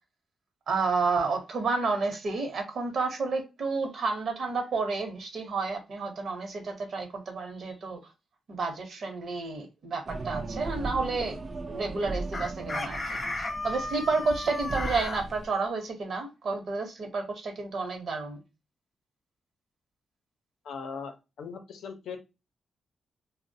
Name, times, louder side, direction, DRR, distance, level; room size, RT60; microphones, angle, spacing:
voice 1, 0.7-8.0 8.5-11.4 11.7-13.2 13.6-18.4, right 4 dB, 55° right, 0.8 m, -30 dB
sound 1, 10.1-15.5, right 3 dB, 35° right, 0.3 m, -37 dB
Chicken rooster, 12.3-15.2, left 2 dB, 25° left, 0.5 m, -34 dB
voice 2, 20.6-22.2, left 5 dB, 80° left, 0.6 m, -39 dB
3.0 x 2.0 x 2.6 m
wide cardioid pair, 150°, 0 cm